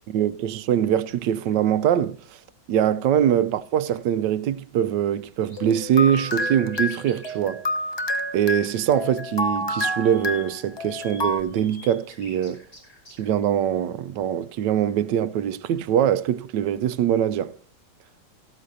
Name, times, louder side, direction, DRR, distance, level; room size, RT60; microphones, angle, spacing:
voice 1, 0.1-2.2 2.7-7.6 8.3-12.6 13.2-17.6, right 10 dB, 75° right, 1.2 m, -23 dB
sound 1, 1.5-1.6 3.9-4.0 5.2-7.5 8.8-9.0 9.3-13.3, left 2 dB, 60° left, 6.5 m, -48 dB
sound 2, 5.6-11.4, left 1 dB, 40° left, 0.3 m, -28 dB
15.0 x 13.5 x 2.7 m
omnidirectional pair, 2.0 m